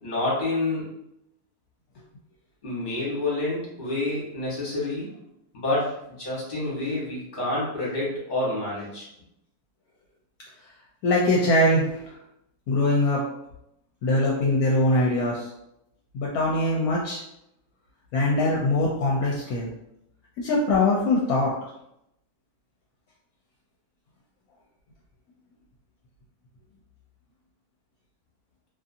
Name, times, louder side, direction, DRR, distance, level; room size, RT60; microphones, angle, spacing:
voice 1, 0.0-0.8 2.6-5.1 5.5-9.1, left 2 dB, 35° left, -6 dB, 1.2 m, -28 dB
voice 2, 11.0-12.0 12.7-13.3 14.0-15.5 16.1-17.2 18.1-19.7 20.4-21.5, left 2 dB, 75° left, -3 dB, 1.0 m, -22 dB
2.6 x 2.6 x 2.5 m, 0.79 s
omnidirectional pair, 1.6 m